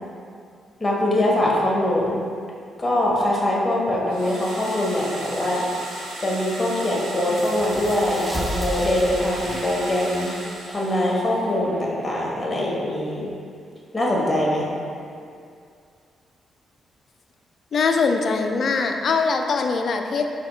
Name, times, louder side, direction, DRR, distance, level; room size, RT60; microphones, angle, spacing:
voice 1, 0.8-2.2 2.8-5.6 6.2-10.3 10.7-13.3 13.9-14.6, left 1 dB, 25° left, -4 dB, 1.2 m, -23 dB
sound 1, 4.1-11.4, right 1 dB, 80° right, 0.7 m, -36 dB
sound 2, 7.4-12.6, right 1 dB, 10° right, 0.7 m, -35 dB
voice 2, 17.7-20.2, left 4 dB, 60° left, 4 dB, 0.4 m, -22 dB
4.2 x 2.8 x 4.2 m, 2.3 s
hypercardioid pair, 45°, 0 cm